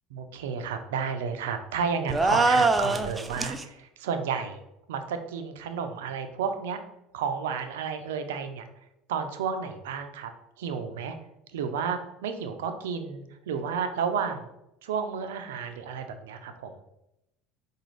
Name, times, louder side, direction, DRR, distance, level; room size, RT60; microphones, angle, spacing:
voice 1, 0.1-4.6 4.9-6.8 7.1-8.6 9.1-10.3 10.6-11.2 11.5-14.5 14.8-16.7, right 6 dB, 85° right, 7 dB, 0.4 m, -32 dB
sound 1, 2.1-3.6, right 3 dB, 15° right, 0.4 m, -23 dB
5.0 x 2.3 x 3.1 m, 0.85 s
hypercardioid pair, 80°, 0 cm